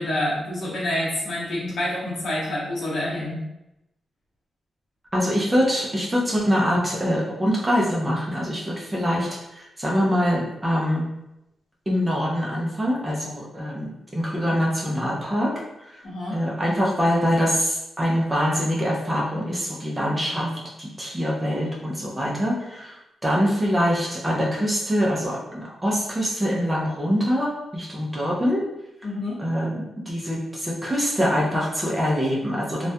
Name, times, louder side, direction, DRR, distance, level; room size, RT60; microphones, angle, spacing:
voice 1, 0.0-3.4 16.0-16.4 29.0-29.4, left 1 dB, 60° left, -8 dB, 0.7 m, -27 dB
voice 2, 5.1-9.3 9.5-11.1 11.9-15.5 15.9-16.0 16.3-20.5 20.8-28.6 29.4-32.9, equal, 10° right, -4 dB, 0.4 m, -24 dB
2.2 x 2.1 x 2.6 m, 0.90 s
wide cardioid pair, 165°, 0 cm